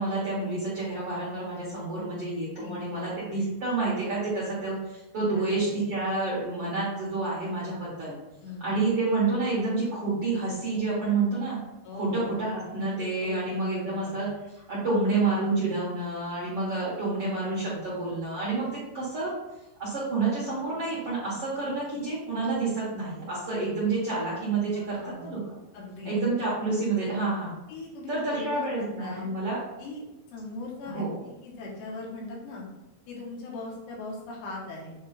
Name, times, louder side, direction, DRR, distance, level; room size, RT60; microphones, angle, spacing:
voice 1, 0.0-8.2 8.6-11.6 11.9-14.3 14.5-18.7 18.9-19.3 19.8-25.4 26.0-27.5 28.1-29.6 30.9-31.1, right 3 dB, 50° right, -7 dB, 1.8 m, -29 dB
voice 2, 2.6-3.2 5.3-5.6 8.4-8.8 11.8-12.4 13.2-13.3 13.7-14.2 24.7-25.3 25.7-26.1 27.7-29.3 29.8-30.0 30.3-32.7 33.1-35.0, left 2 dB, 85° left, -4 dB, 3.9 m, -40 dB
8.8 x 3.3 x 4.3 m, 0.99 s
omnidirectional pair, 4.8 m